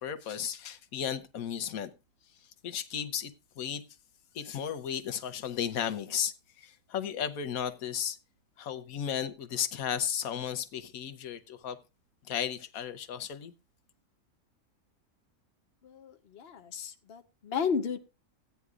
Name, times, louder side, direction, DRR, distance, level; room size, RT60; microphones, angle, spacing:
voice 1, 0.0-1.9 2.6-3.8 4.3-8.2 8.6-11.8 12.2-13.5, left 9 dB, 90° left, 1.3 m, -34 dB
voice 2, 15.8-18.0, left 6 dB, 50° left, 1.1 m, -33 dB
15.0 x 9.4 x 2.4 m
omnidirectional pair, 1.4 m